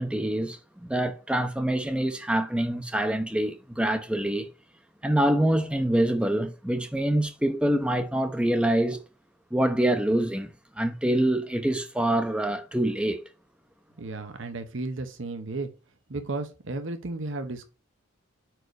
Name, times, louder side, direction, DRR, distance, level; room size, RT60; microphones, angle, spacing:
voice 1, 0.0-4.5 5.0-9.0 9.5-13.2, right 1 dB, 5° right, 0.6 m, -25 dB
voice 2, 14.0-15.7 16.1-17.7, right 2 dB, 65° right, 0.9 m, -34 dB
5.2 x 4.7 x 4.6 m
head